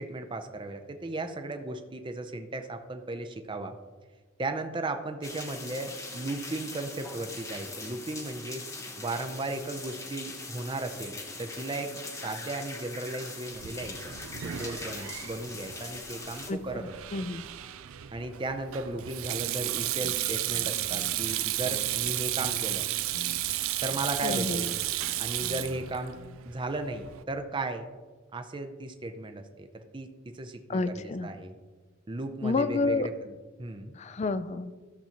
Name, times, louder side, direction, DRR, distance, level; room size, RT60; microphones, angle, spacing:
voice 1, 0.0-3.8 4.4-8.6 9.0-12.0 12.2-14.1 14.4-16.9 18.1-22.9 23.8-24.8 25.2-26.2 26.4-27.9 28.3-31.5 32.1-33.9, right 2 dB, 25° right, 7 dB, 0.5 m, -36 dB
sound 1, 5.2-16.5, left 3 dB, 15° left, 1.0 m, -41 dB
Sink (filling or washing), 13.5-27.2, right 14 dB, 90° right, 0.4 m, -33 dB
voice 2, 16.5-17.4 24.2-24.7 30.7-31.3 32.4-33.1 33.9-34.7, left 3 dB, 35° left, 13 dB, 0.4 m, -30 dB
sound 2, 20.0-20.2 20.5-21.4 21.6-22.8 23.1-23.6 23.9-25.9 26.2-26.4, left 2 dB, 85° left, 0.7 m, -45 dB
13.5 x 6.9 x 2.9 m, 1.4 s
head